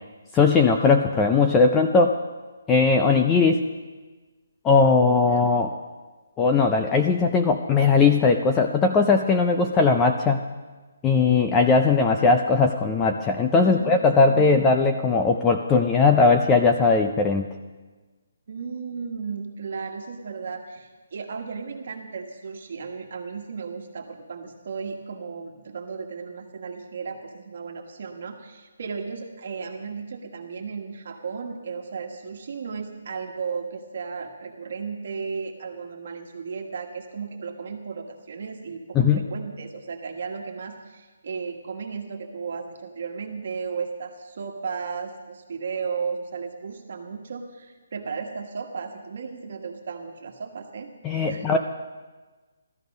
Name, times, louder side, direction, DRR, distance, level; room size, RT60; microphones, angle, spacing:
voice 1, 0.3-2.2 2.7-3.7 4.6-5.7 6.4-10.4 11.0-17.5 39.0-39.2 51.0-51.6, left 4 dB, 10° left, 4 dB, 0.4 m, -19 dB
voice 2, 13.6-14.5 18.5-50.9 51.3-51.6, right 5 dB, 45° right, 2 dB, 1.4 m, -35 dB
16.5 x 13.0 x 5.3 m, 1.3 s
hypercardioid pair, 175°, 0 cm